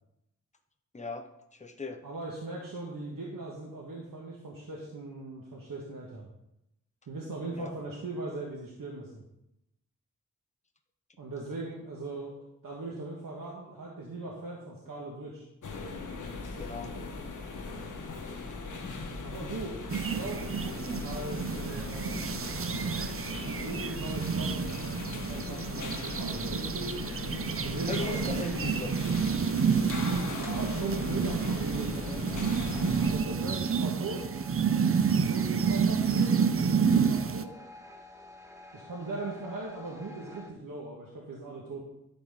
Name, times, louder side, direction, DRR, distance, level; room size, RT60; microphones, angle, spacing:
voice 1, 0.9-2.0 7.6-7.7 16.6-17.0 27.9-29.0, left 4 dB, 20° left, 6 dB, 0.9 m, -39 dB
voice 2, 2.0-6.3 7.1-9.2 11.2-12.4 12.6-15.5 19.2-20.4 21.0-22.5 23.6-24.8 25.3-27.0 27.6-28.6 29.9-32.1 33.0-34.2 35.3-37.5 38.7-41.8, right 2 dB, 85° right, -3 dB, 1.6 m, -39 dB
sound 1, 15.6-33.1, left 3 dB, 65° left, 1.3 m, -39 dB
sound 2, 19.9-37.4, right 6 dB, 45° right, 0.6 m, -29 dB
sound 3, 30.4-40.5, left 1 dB, 10° right, 1.3 m, -50 dB
11.0 x 4.4 x 5.5 m, 0.85 s
wide cardioid pair, 75°, 33 cm